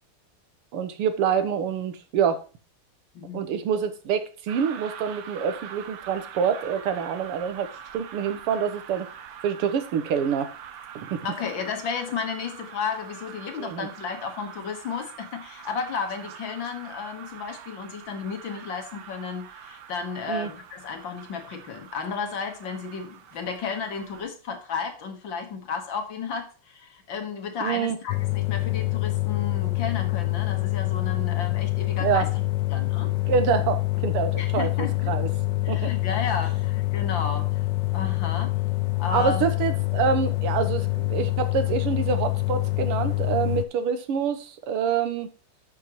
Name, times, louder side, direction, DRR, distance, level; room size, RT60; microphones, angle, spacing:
voice 1, 0.7-2.4 3.3-9.1 9.4-10.5 11.0-11.2 13.6-13.9 20.3-20.5 27.6-28.0 32.0-32.3 33.3-34.7 35.1-35.3 35.7-35.9 39.1-45.3, right 7 dB, 90° right, 9 dB, 2.0 m, -26 dB
voice 2, 3.1-3.4 11.2-32.3 32.7-33.1 33.9-34.1 34.4-35.1 35.6-37.6 37.9-38.6 39.0-39.5, left 5 dB, 60° left, 5 dB, 2.1 m, -33 dB
sound 1, 4.5-24.2, right 8 dB, 65° right, 1.5 m, -44 dB
sound 2, 28.1-43.6, left 20 dB, 75° left, 1.0 m, -26 dB
12.5 x 6.1 x 3.0 m, 0.34 s
omnidirectional pair, 2.4 m